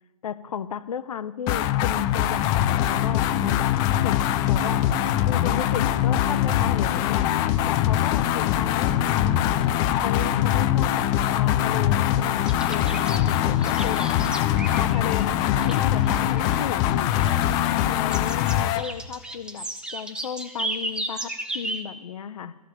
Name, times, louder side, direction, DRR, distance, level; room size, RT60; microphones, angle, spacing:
voice 1, 0.2-3.7 4.0-4.2 4.5-4.9 5.3-7.3 7.7-11.1 11.3-14.1 14.7-17.4 17.9-22.6, left 8 dB, 70° left, 13 dB, 0.5 m, -34 dB
sound 1, 1.5-18.9, left 11 dB, 20° left, 0.3 m, -22 dB
sound 2, 12.4-15.3 15.5-16.7 17.1-17.8 18.1-21.8, right 1 dB, 5° right, 0.7 m, -35 dB
13.0 x 6.8 x 7.5 m, 1.4 s
figure-of-eight pair, 120°, 19 cm